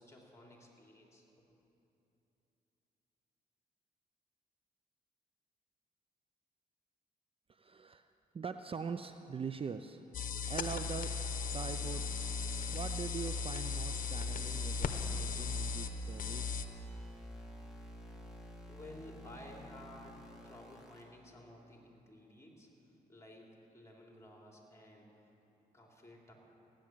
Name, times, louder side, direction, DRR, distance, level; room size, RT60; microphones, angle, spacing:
voice 1, 0.0-1.6 18.7-25.2 25.7-26.3, left 1 dB, 20° left, -1 dB, 3.2 m, -55 dB
voice 2, 7.5-8.1 8.3-10.0 10.5-11.1 11.5-12.1 12.7-16.6, right 6 dB, 35° right, 9 dB, 0.5 m, -42 dB
sound 1, 10.1-16.7, left 5 dB, 60° left, 0.9 m, -37 dB
sound 2, 11.1-21.0, equal, 5° right, 2.6 m, -50 dB
16.0 x 10.5 x 7.4 m, 3.0 s
cardioid pair, 80°, 16 cm